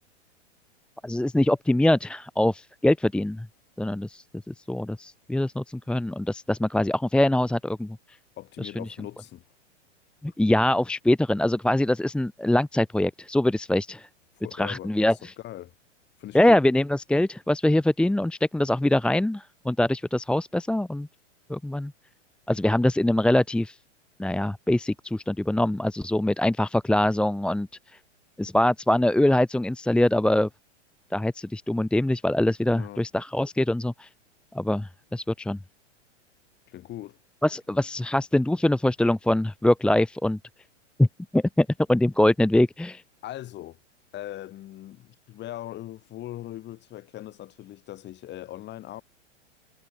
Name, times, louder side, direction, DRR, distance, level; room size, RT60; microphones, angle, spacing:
voice 1, 1.0-3.5 3.8-8.0 8.6-8.8 10.2-14.1 14.6-15.3 16.3-21.1 21.5-21.9 22.5-23.8 24.2-27.7 28.4-30.5 31.1-34.1 34.5-35.6 37.4-40.4 41.0-41.1 41.3-43.0, left 1 dB, 5° left, 1.5 m, -23 dB
voice 2, 8.4-9.4 14.4-14.9 15.2-15.7 16.2-16.6 32.7-33.1 36.7-37.2 37.7-37.8 43.2-43.8 44.1-49.0, left 14 dB, 30° left, 6.4 m, -40 dB
hypercardioid pair, 125°, 36 cm